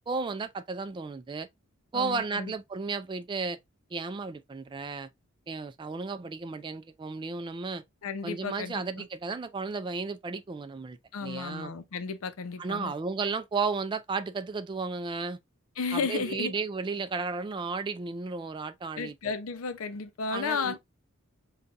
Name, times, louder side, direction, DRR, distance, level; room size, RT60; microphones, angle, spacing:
voice 1, 0.0-1.5 1.9-3.6 3.9-5.1 5.5-7.8 8.2-11.7 12.6-15.4 15.9-19.1 20.3-20.8, right 4 dB, 25° right, 0.3 m, -33 dB
voice 2, 1.9-2.5 8.0-9.0 11.1-12.9 15.8-16.6 19.0-20.8, left 5 dB, 85° left, 0.6 m, -33 dB
5.3 x 2.3 x 2.4 m
head